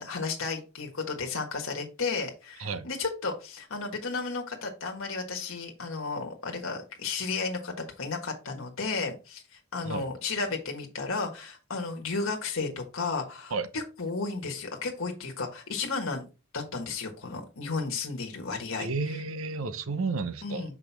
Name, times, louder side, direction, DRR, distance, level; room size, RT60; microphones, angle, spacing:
voice 1, 0.0-16.3 16.5-19.2 20.4-20.7, left 4 dB, 75° left, 1.4 m, -33 dB
voice 2, 18.8-20.8, right 4 dB, 80° right, 0.8 m, -32 dB
5.9 x 5.0 x 3.4 m
head